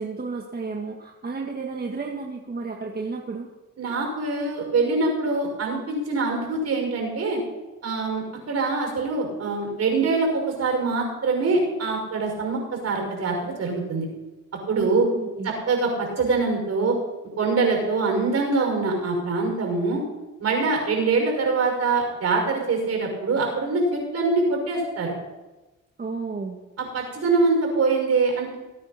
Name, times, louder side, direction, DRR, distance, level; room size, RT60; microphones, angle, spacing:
voice 1, 0.0-3.5 14.7-15.5 26.0-26.6, right 4 dB, 30° right, 0 dB, 1.6 m, -32 dB
voice 2, 3.8-7.4 7.8-14.1 14.7-15.0 15.4-17.0 17.4-20.0 20.4-25.1 26.8-28.6, right 3 dB, 55° right, 1 dB, 5.9 m, -24 dB
20.0 x 9.5 x 4.2 m, 1.1 s
cardioid pair, 90°, 30 cm